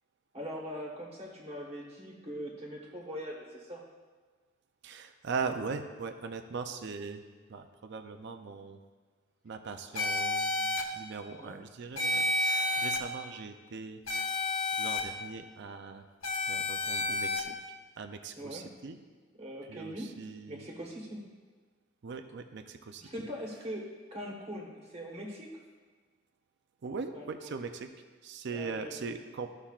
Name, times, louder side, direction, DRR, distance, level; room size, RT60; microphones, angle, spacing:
voice 1, 0.3-3.8 11.3-11.6 18.4-18.6 19.4-20.1 20.5-21.2 23.0-25.5 27.1-27.5 28.5-29.0, equal, 30° right, -2 dB, 1.2 m, -41 dB
voice 2, 4.8-8.8 9.4-14.2 14.8-16.0 16.5-17.6 18.0-19.0 19.7-20.7 22.0-23.1 26.8-27.9 28.2-29.5, right 4 dB, 55° right, 7 dB, 0.5 m, -40 dB
sound 1, 10.0-10.8 12.0-13.0 14.1-15.0 16.2-17.4, left 2 dB, 70° left, 0.9 m, -30 dB
13.5 x 5.7 x 2.4 m, 1.4 s
head